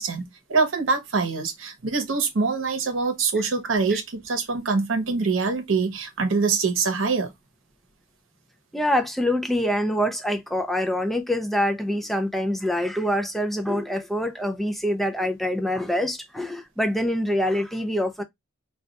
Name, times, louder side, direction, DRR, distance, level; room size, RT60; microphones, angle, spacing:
voice 1, 0.0-7.3, right 4 dB, 80° right, 0.8 m, -24 dB
voice 2, 8.7-18.2, equal, ahead, 0.3 m, -25 dB
2.3 x 2.2 x 3.8 m
head